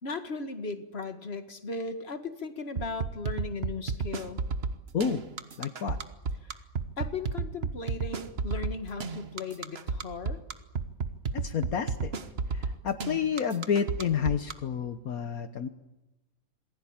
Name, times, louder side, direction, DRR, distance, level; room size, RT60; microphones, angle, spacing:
voice 1, 0.0-4.5 6.4-6.6 7.0-10.4, left 3 dB, 40° left, 8 dB, 2.1 m, -37 dB
sound 1, 2.8-14.5, right 4 dB, 45° right, 1.5 m, -32 dB
voice 2, 5.6-6.0 11.3-12.1 12.5-15.7, left 7 dB, 70° left, 9 dB, 1.6 m, -30 dB
27.5 x 20.5 x 8.9 m, 1.0 s
omnidirectional pair, 1.6 m